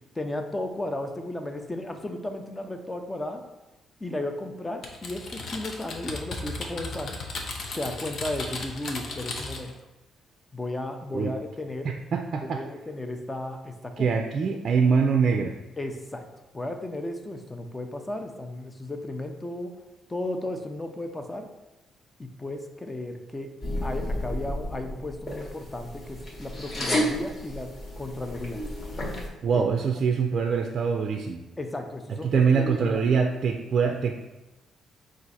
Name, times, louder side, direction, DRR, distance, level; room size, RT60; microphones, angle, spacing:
voice 1, 0.1-3.4 4.0-7.2 7.7-9.7 10.5-11.9 12.4-14.1 15.8-16.3 16.5-19.7 20.1-21.5 22.2-23.5 23.8-27.7 28.0-28.6 29.5-29.6 31.6-33.0, left 1 dB, 20° left, 5 dB, 0.5 m, -34 dB
Typing, 4.8-9.7, left 3 dB, 60° left, 0.7 m, -35 dB
voice 2, 12.1-12.6 14.0-15.6 29.4-31.4 32.2-34.3, right 5 dB, 55° right, 4 dB, 0.3 m, -24 dB
sound 1, 23.6-29.3, left 1 dB, 40° left, 1.2 m, -32 dB
4.5 x 2.5 x 4.0 m, 1.0 s
cardioid pair, 90°, 0 cm